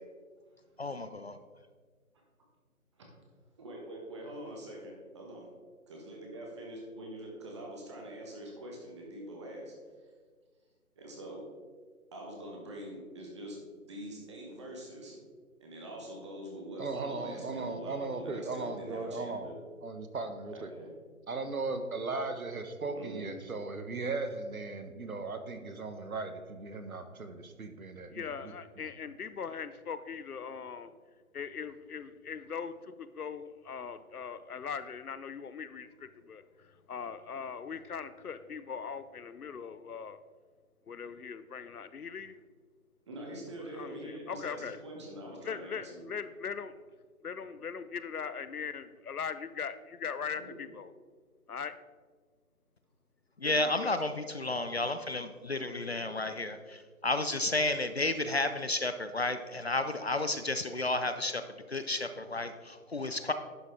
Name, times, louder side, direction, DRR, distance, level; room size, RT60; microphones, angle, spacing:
voice 1, 0.8-1.3 53.4-61.4 61.7-63.3, left 2 dB, 50° left, 10 dB, 0.5 m, -32 dB
voice 2, 3.6-5.5 5.9-9.7 11.0-11.4 12.1-15.2 15.6-19.5 20.5-20.9 22.9-23.3 43.1-46.0 50.4-50.5, right 1 dB, 20° right, -1 dB, 1.3 m, -44 dB
voice 3, 16.8-19.5 19.8-20.7 21.3-28.5, right 3 dB, 70° right, 8 dB, 1.2 m, -37 dB
voice 4, 28.1-30.9 31.3-40.2 40.9-42.4 43.7-44.8 45.4-46.7 47.2-50.9 51.5-51.7 53.4-54.0, left 6 dB, 85° left, 13 dB, 0.7 m, -40 dB
11.0 x 6.0 x 3.6 m, 1.5 s
figure-of-eight pair, 155°, 44 cm